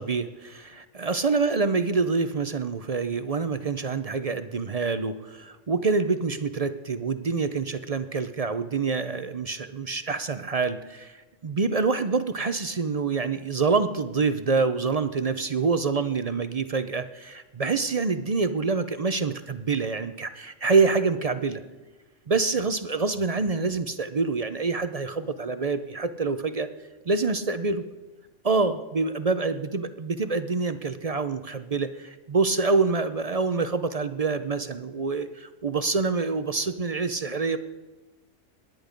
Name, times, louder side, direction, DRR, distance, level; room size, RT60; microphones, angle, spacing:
voice 1, 0.0-11.2 11.4-21.6 22.3-26.7 27.1-27.8 28.4-37.6, right 4 dB, 40° right, 11 dB, 0.5 m, -26 dB
18.5 x 11.0 x 5.2 m, 1.2 s
omnidirectional pair, 1.3 m